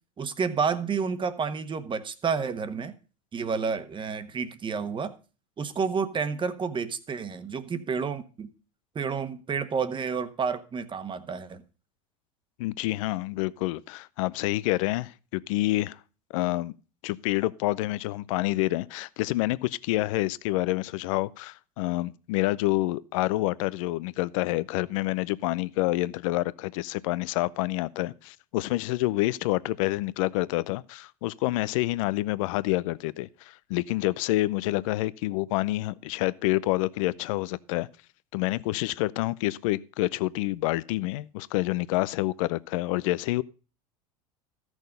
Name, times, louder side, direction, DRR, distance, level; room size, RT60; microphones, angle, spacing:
voice 1, 0.2-2.9 3.3-5.1 5.6-8.5 8.9-11.6, right 5 dB, 30° right, 1.3 m, -30 dB
voice 2, 12.6-16.0 16.3-16.7 17.0-37.9 38.3-43.4, left 19 dB, 70° left, 0.6 m, -28 dB
14.0 x 6.3 x 5.2 m
hypercardioid pair, 85°, 17 cm